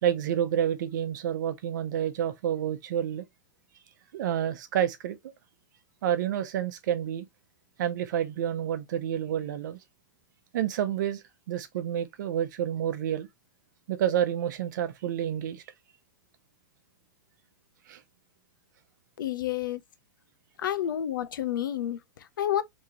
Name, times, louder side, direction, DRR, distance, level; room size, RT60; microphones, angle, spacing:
voice 1, 0.0-3.2 4.1-5.3 6.0-7.3 7.8-9.8 10.5-13.3 13.9-15.6 17.9-18.0, right 10 dB, 65° right, 0.8 m, -29 dB
voice 2, 19.2-19.8 20.6-22.6, left 11 dB, 80° left, 0.6 m, -30 dB
3.6 x 3.1 x 2.8 m
hypercardioid pair, 130°, 11 cm